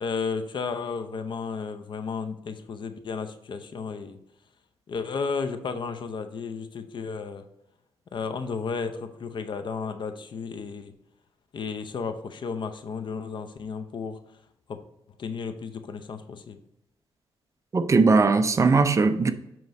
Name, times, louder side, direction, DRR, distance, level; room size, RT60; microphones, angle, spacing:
voice 1, 0.0-4.2 4.9-7.4 8.1-10.9 11.5-14.2 14.7-14.8 15.2-16.6, left 5 dB, 50° left, 0.7 m, -33 dB
voice 2, 17.7-19.3, right 4 dB, 30° right, 0.5 m, -19 dB
7.8 x 3.1 x 5.1 m
cardioid pair, 115°, 10 cm